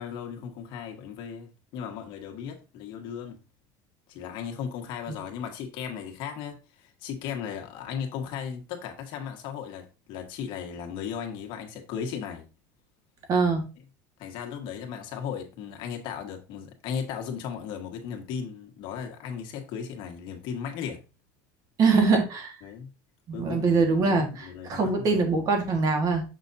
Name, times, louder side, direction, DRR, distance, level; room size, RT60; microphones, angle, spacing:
voice 1, 0.0-3.4 4.1-12.4 14.2-21.0 22.6-22.9 23.3-25.2, left 7 dB, 60° left, 1.5 m, -36 dB
voice 2, 13.3-13.6 21.8-22.5 23.3-26.2, right 4 dB, 40° right, 1.7 m, -23 dB
6.7 x 6.1 x 2.7 m
cardioid pair, 145°, 9 cm